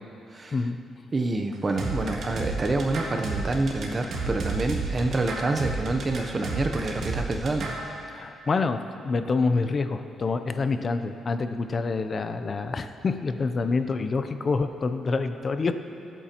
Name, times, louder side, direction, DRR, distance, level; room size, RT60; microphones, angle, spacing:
voice 1, 1.1-7.8, right 2 dB, 25° right, 5 dB, 0.8 m, -27 dB
sound 1, 1.8-7.8, right 3 dB, 60° right, 1.8 m, -31 dB
voice 2, 8.1-15.7, left 4 dB, 35° left, 9 dB, 0.6 m, -27 dB
23.0 x 9.0 x 3.0 m, 2.8 s
cardioid pair, 130°, 0 cm